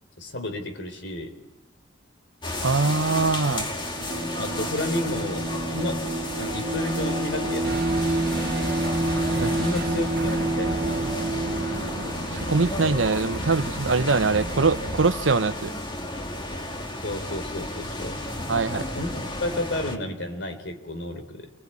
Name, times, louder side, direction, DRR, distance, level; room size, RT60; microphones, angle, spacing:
voice 1, 0.2-1.4 4.4-7.8 9.5-11.1 17.0-18.2 18.7-21.5, left 1 dB, 70° left, 6 dB, 3.7 m, -32 dB
sound 1, 2.4-20.0, left 1 dB, 25° left, 2.1 m, -33 dB
voice 2, 2.6-3.7 9.4-9.5 12.3-15.7 18.5-18.8, right 4 dB, 90° right, 13 dB, 0.9 m, -23 dB
Bowed string instrument, 3.9-12.4, right 2 dB, 35° right, 2.3 m, -28 dB
sound 2, 7.6-15.1, right 2 dB, 55° right, 1.4 m, -34 dB
28.0 x 22.0 x 8.6 m, 0.91 s
head